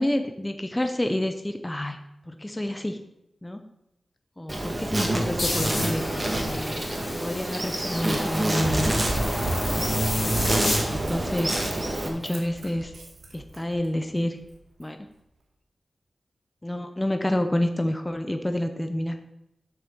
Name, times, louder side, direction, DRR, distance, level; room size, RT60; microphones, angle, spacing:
voice 1, 0.0-2.0 2.3-3.1 3.4-3.6 4.4-6.8 7.2-8.9 10.3-11.6 12.0-12.9 13.3-14.4 14.8-15.1 16.6-19.2, left 1 dB, 15° left, 6 dB, 0.7 m, -29 dB
Insect, 4.5-12.1, right 1 dB, 25° right, 1.9 m, -28 dB
sound 1, 5.4-10.8, left 1 dB, 45° left, 3.1 m, -31 dB
Run, 8.6-13.9 14.4-14.5, right 2 dB, 75° right, 1.9 m, -34 dB
8.1 x 6.6 x 6.8 m, 0.84 s
wide cardioid pair, 125°, 0 cm